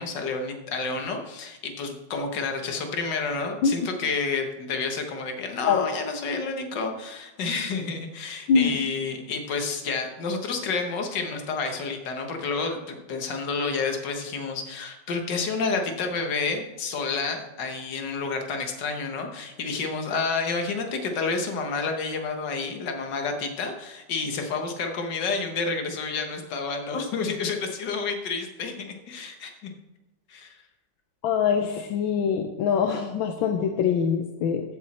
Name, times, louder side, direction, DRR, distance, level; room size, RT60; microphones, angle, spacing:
voice 1, 0.0-29.7 30.3-30.6, left 4 dB, 65° left, 4 dB, 1.9 m, -30 dB
voice 2, 8.5-8.8 31.2-34.6, left 6 dB, 85° left, 4 dB, 1.5 m, -23 dB
14.5 x 6.3 x 4.3 m, 1.1 s
omnidirectional pair, 2.1 m